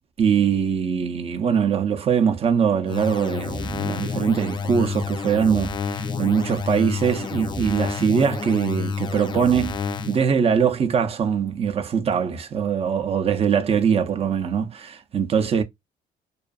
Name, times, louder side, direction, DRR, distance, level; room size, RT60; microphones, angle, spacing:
voice 1, 0.2-9.8 10.1-15.6, right 7 dB, 35° right, 0.5 m, -22 dB
sound 1, 2.9-10.3, left 5 dB, 25° left, 0.3 m, -29 dB
2.6 x 2.4 x 2.3 m
cardioid pair, 110°, 17 cm